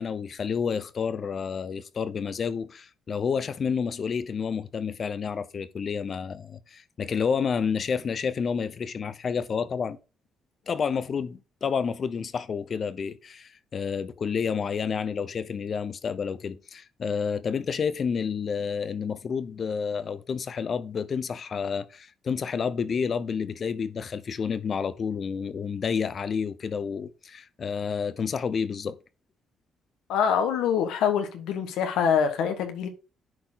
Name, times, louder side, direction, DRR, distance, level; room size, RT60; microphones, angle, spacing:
voice 1, 0.0-10.0 10.7-29.0, left 6 dB, 50° left, 0.7 m, -30 dB
voice 2, 30.1-32.9, left 7 dB, 90° left, 1.3 m, -25 dB
10.5 x 4.4 x 4.0 m
cardioid pair, 90°, 0 cm